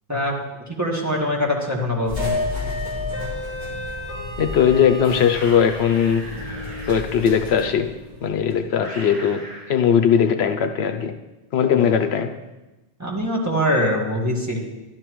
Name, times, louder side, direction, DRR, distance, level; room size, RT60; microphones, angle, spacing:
voice 1, 0.7-2.3 11.6-11.9 13.0-14.6, left 1 dB, 15° right, -3 dB, 1.8 m, -23 dB
sound 1, 2.1-8.6, left 2 dB, 40° right, 3.0 m, -31 dB
voice 2, 4.4-6.2 6.9-7.9 8.2-9.4 9.7-11.1 11.5-12.3, left 7 dB, 75° left, 8 dB, 0.9 m, -19 dB
sound 2, 5.3-7.0 8.8-9.7, equal, 55° right, 4.5 m, -37 dB
12.0 x 12.0 x 3.1 m, 1.1 s
omnidirectional pair, 1.1 m